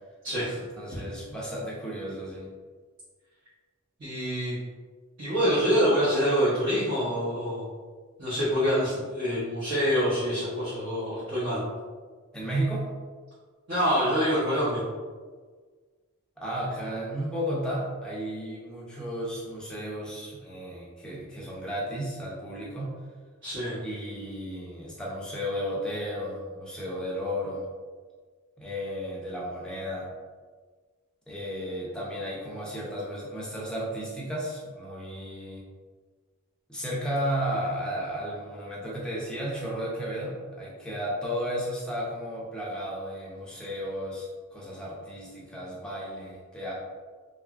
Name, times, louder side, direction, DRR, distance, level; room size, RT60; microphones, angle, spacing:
voice 1, 0.2-0.6 4.0-4.5 5.2-7.6 8.2-11.6 13.7-14.8 23.4-23.8, equal, 55° right, -12 dB, 0.9 m, -26 dB
voice 2, 0.8-2.5 12.3-12.9 16.4-23.0 23.8-27.7 28.6-30.1 31.3-35.6 36.7-46.7, equal, 5° left, -6 dB, 0.5 m, -33 dB
2.9 x 2.4 x 2.3 m, 1.5 s
head